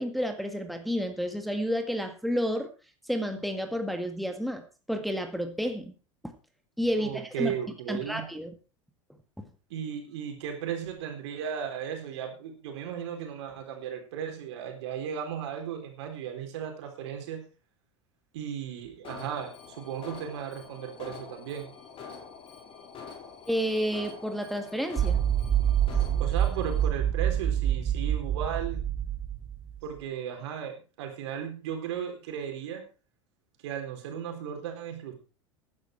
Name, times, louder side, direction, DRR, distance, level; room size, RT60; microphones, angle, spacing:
voice 1, 0.0-2.7 3.1-5.9 6.8-7.5 7.9-8.5 9.4-9.5 23.5-25.2, equal, ahead, 6 dB, 1.9 m, -30 dB
voice 2, 7.0-8.2 9.7-17.4 18.3-21.7 26.2-28.8 29.8-32.8 33.6-35.1, right 8 dB, 65° right, 4 dB, 4.0 m, -36 dB
Alarm, 19.0-26.8, left 6 dB, 35° left, 5.0 m, -46 dB
sound 1, 25.0-29.8, right 10 dB, 30° right, 1.5 m, -27 dB
14.0 x 10.5 x 4.6 m, 0.34 s
figure-of-eight pair, 80°, 16 cm